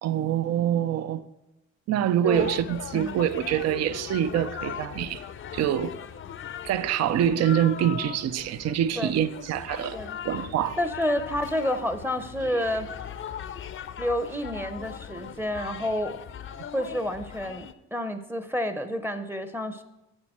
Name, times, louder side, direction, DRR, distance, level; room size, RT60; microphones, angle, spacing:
voice 1, 0.0-1.2 1.9-5.2 5.5-5.9 6.6-10.0 10.2-10.8, right 10 dB, 60° right, 0.5 m, -25 dB
sound 1, 2.3-17.7, left 8 dB, 45° left, 0.5 m, -39 dB
voice 2, 10.8-12.9 14.0-16.2 16.7-19.8, equal, 5° right, 0.7 m, -29 dB
8.9 x 7.2 x 4.3 m
cardioid pair, 90°, 30 cm